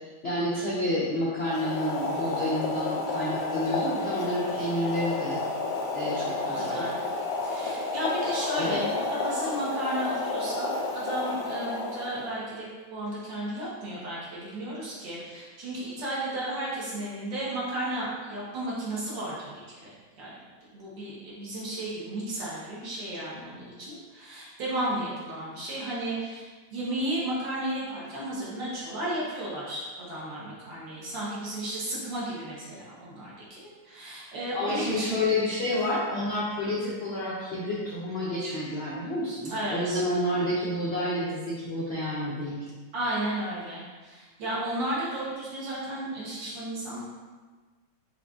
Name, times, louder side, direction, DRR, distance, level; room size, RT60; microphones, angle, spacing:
voice 1, 0.2-5.4 5.9-6.9 8.6-8.8 34.5-42.7, left 1 dB, 85° left, -7 dB, 0.5 m, -29 dB
Boiling, 1.4-12.4, left 3 dB, 65° left, 1.0 m, -31 dB
voice 2, 6.6-6.9 7.4-20.3 20.7-35.1 39.5-40.0 42.9-47.0, right 1 dB, 65° right, -7 dB, 1.7 m, -34 dB
5.2 x 2.5 x 3.5 m, 1.4 s
omnidirectional pair, 2.2 m